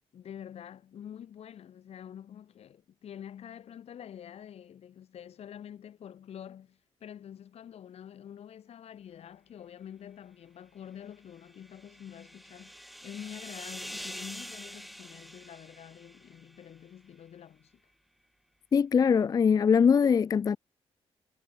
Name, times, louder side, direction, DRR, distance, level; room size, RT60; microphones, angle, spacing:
voice 1, 0.1-17.8, left 9 dB, 75° left, 5.5 m, -47 dB
sound 1, 11.2-16.8, equal, ahead, 2.1 m, -45 dB
voice 2, 18.7-20.6, left 6 dB, 35° left, 0.3 m, -22 dB
cardioid pair, 105°, 11 cm